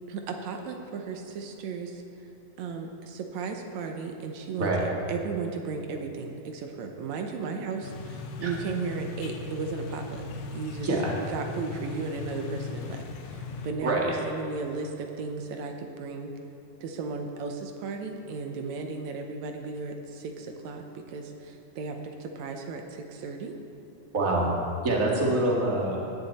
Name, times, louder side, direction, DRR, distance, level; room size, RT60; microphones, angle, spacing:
voice 1, 0.1-2.0 2.6-10.2 10.5-10.9 11.3-16.3 16.8-23.5, right 4 dB, 70° right, 4 dB, 1.8 m, -35 dB
sound 1, 7.8-13.7, left 3 dB, 90° left, 1.3 m, -38 dB
voice 2, 10.8-11.1 13.8-14.1 24.1-24.5 24.8-26.0, right 2 dB, 30° right, -2 dB, 1.6 m, -25 dB
17.0 x 10.5 x 4.2 m, 3.0 s
omnidirectional pair, 3.9 m